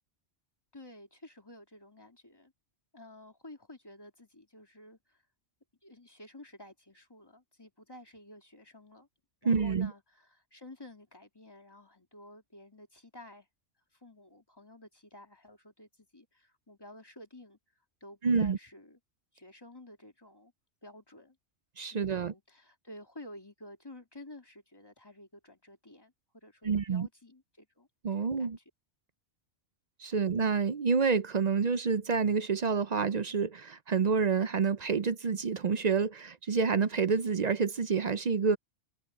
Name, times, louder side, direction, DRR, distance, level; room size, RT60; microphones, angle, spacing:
voice 1, 0.7-2.5 2.9-5.2 5.8-9.1 9.4-13.5 13.9-17.6 18.0-19.0 19.3-20.5 20.8-21.4 21.9-28.6 30.1-30.3, left 1 dB, 20° left, 2.9 m, -52 dB
voice 2, 9.4-9.9 18.2-18.6 21.8-22.3 26.6-27.1 28.0-28.6 30.0-38.6, right 5 dB, 50° right, 0.6 m, -28 dB
omnidirectional pair, 1.1 m